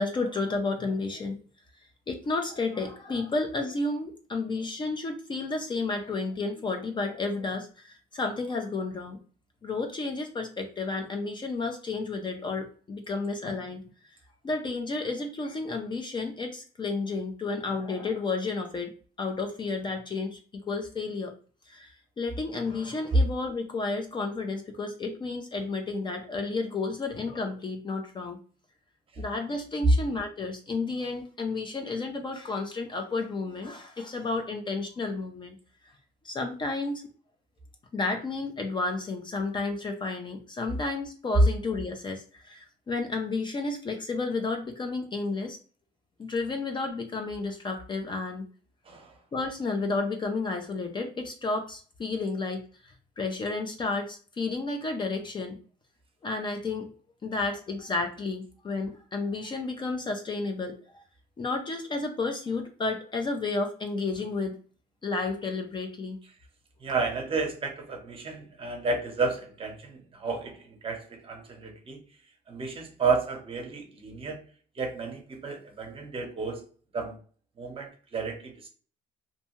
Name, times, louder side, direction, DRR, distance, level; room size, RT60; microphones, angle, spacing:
voice 1, 0.0-1.4 2.1-9.2 9.6-13.8 14.4-21.3 21.7-21.9 22.2-28.4 29.2-35.6 36.2-37.0 37.9-45.6 46.2-48.5 49.3-52.6 53.2-55.6 56.2-56.9 57.2-60.8 61.4-64.5 65.0-66.2, left 3 dB, 30° left, 4 dB, 0.4 m, -31 dB
voice 2, 66.8-72.0 72.5-74.4 74.8-76.6 76.9-77.2 77.6-78.7, right 4 dB, 30° right, 3 dB, 0.8 m, -32 dB
2.7 x 2.2 x 2.9 m, 0.40 s
cardioid pair, 110°, 17 cm